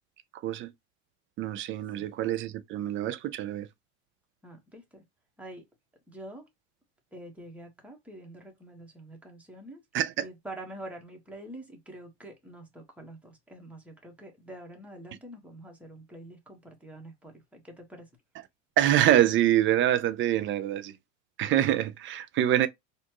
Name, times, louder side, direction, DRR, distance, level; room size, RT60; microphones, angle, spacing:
voice 1, 1.4-3.7 9.9-10.3 18.8-20.9 21.4-22.7, right 12 dB, 30° right, 0.5 m, -25 dB
voice 2, 4.4-5.0 5.4-5.6 6.1-6.5 7.1-9.8 10.2-18.2, right 1 dB, 5° right, 1.3 m, -46 dB
4.3 x 2.5 x 2.9 m
supercardioid pair, 120°, 38 cm